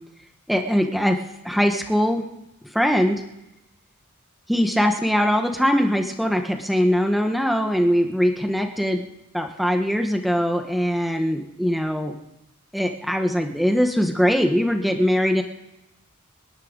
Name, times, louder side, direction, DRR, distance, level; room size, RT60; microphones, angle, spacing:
voice 1, 0.5-1.2 1.4-2.2 2.7-3.2 4.5-9.0 9.3-12.1 12.7-15.4, equal, ahead, 4 dB, 1.3 m, -21 dB
27.0 x 11.0 x 4.0 m, 0.89 s
head